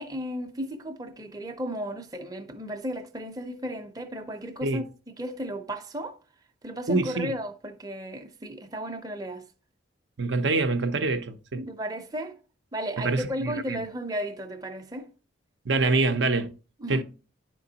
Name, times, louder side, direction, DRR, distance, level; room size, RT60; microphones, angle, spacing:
voice 1, 0.0-4.9 5.2-6.2 6.6-9.5 11.5-12.3 12.7-15.1 16.8-17.0, equal, 20° right, 0.7 m, -34 dB
voice 2, 6.9-7.3 10.2-11.7 13.0-13.8 15.6-16.5 16.9-17.0, right 3 dB, 65° right, 0.7 m, -25 dB
10.5 x 4.5 x 2.8 m
head